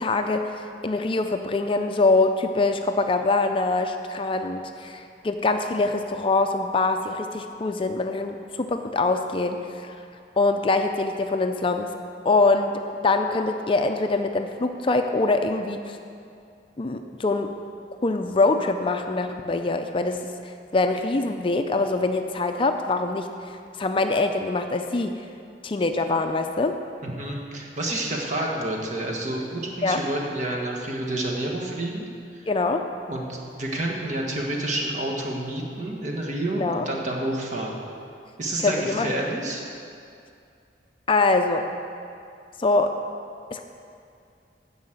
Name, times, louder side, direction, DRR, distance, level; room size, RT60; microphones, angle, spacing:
voice 1, 0.0-9.9 10.4-11.9 12.2-12.7 13.0-16.0 16.8-17.5 18.0-25.1 25.6-26.8 29.8-30.0 32.5-32.8 36.6-36.9 38.6-39.2 41.1-41.6 42.6-42.9 43.5-43.6, left 3 dB, 30° left, 6 dB, 0.4 m, -24 dB
voice 2, 27.0-32.1 32.3-32.5 33.1-37.8 38.4-39.6, right 1 dB, 45° right, -2 dB, 1.6 m, -29 dB
9.5 x 6.2 x 7.8 m, 2.5 s
head